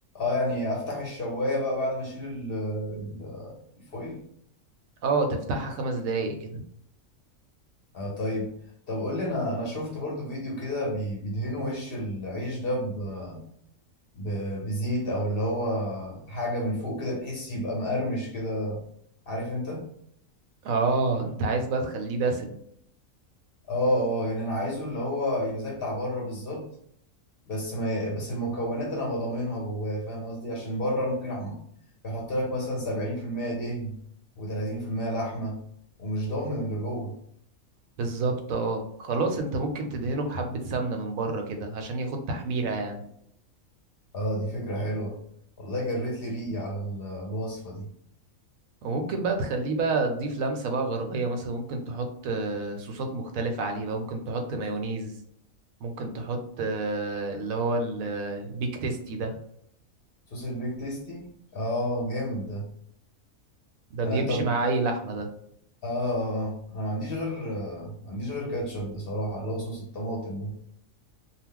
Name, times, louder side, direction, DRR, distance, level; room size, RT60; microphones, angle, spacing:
voice 1, 0.1-4.2 7.9-8.5 8.9-13.4 14.1-18.8 19.3-19.9 23.7-26.7 27.5-31.6 32.0-34.0 34.4-35.6 36.0-37.2 44.1-45.2 45.6-47.9 60.3-61.3 61.5-62.7 64.0-64.4 65.8-70.6, equal, 55° left, -2 dB, 0.7 m, -30 dB
voice 2, 5.0-6.6 20.6-22.5 38.0-43.0 48.8-55.1 55.8-59.4 63.9-65.3, right 3 dB, 80° right, 4 dB, 1.0 m, -29 dB
2.3 x 2.0 x 3.6 m, 0.69 s
omnidirectional pair, 1.4 m